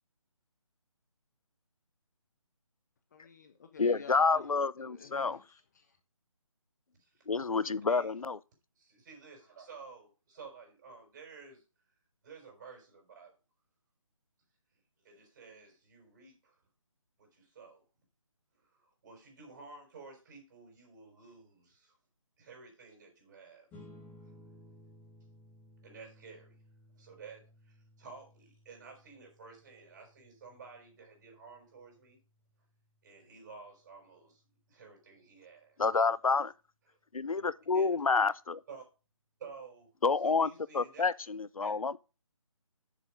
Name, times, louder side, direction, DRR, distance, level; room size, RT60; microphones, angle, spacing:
voice 1, 3.1-5.9, left 5 dB, 30° left, 0.8 m, -51 dB
voice 2, 3.8-5.4 7.3-8.4 35.8-36.5 37.1-38.6 40.0-40.5 40.7-42.0, left 4 dB, 90° left, 0.5 m, -29 dB
voice 3, 6.9-7.2 7.9-8.1 8.8-11.6 12.2-13.3 15.0-16.6 17.2-17.8 18.6-22.0 22.4-23.7 25.8-26.6 26.9-32.2 33.0-34.4 34.7-35.8 37.4-37.5 37.7-38.2 38.7-38.8 39.4-39.9 40.2-41.0 41.6-41.7, right 5 dB, 35° right, 5.3 m, -52 dB
sound 1, 23.7-34.5, left 1 dB, 10° left, 1.6 m, -59 dB
7.2 x 6.9 x 5.1 m
figure-of-eight pair, 155°, 17 cm